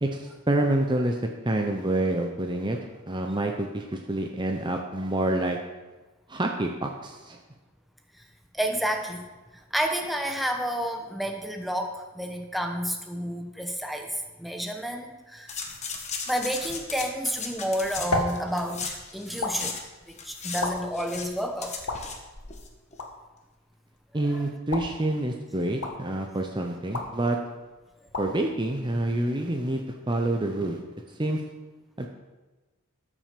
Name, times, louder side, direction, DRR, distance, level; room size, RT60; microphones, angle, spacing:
voice 1, 0.0-1.2 1.4-2.8 3.1-5.6 6.3-7.4 24.1-27.4 28.2-30.8 31.2-31.4 32.0-32.1, right 1 dB, 20° right, 2 dB, 0.8 m, -27 dB
voice 2, 8.5-9.3 9.5-15.6 16.3-19.8 20.1-21.7 24.3-24.5, equal, ahead, 3 dB, 1.0 m, -30 dB
sound 1, 15.5-19.8 20.1-22.7 22.9-23.0, left 5 dB, 30° left, 1.3 m, -37 dB
sound 2, 17.4-29.6, left 2 dB, 85° left, 1.6 m, -37 dB
13.5 x 6.2 x 6.8 m, 1.2 s
head